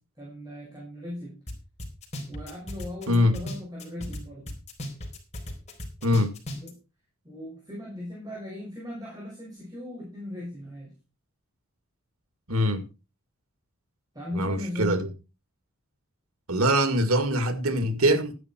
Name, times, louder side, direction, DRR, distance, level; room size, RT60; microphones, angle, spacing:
voice 1, 0.2-1.4 2.3-4.6 6.5-6.8 7.2-10.9 14.1-15.0, left 1 dB, 15° right, 6.4 m, -38 dB
sound 1, 1.5-1.6 1.8-4.2 4.5-6.7, left 1 dB, 30° left, 4.0 m, -36 dB
voice 2, 12.5-12.9 14.3-15.1 16.5-18.3, equal, 80° right, 2.1 m, -23 dB
13.0 x 10.5 x 4.5 m
head